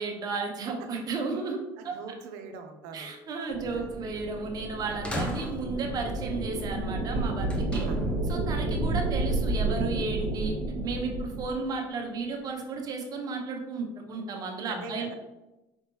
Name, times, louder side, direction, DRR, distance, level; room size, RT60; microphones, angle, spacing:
voice 1, 0.0-1.6 1.8-2.0 2.9-7.9 8.3-10.5 10.8-15.1, right 4 dB, 40° right, 2 dB, 0.9 m, -33 dB
voice 2, 1.8-3.1 3.7-3.9 7.8-8.0 14.7-15.1, right 4 dB, 90° right, 6 dB, 0.6 m, -42 dB
sound 1, 3.5-11.6, right 2 dB, 60° right, 1.2 m, -31 dB
sound 2, 4.2-4.3 5.0-6.0 7.5-8.2, left 1 dB, 10° left, 0.7 m, -35 dB
5.2 x 3.2 x 3.0 m, 1.0 s
cardioid pair, 120°, 10 cm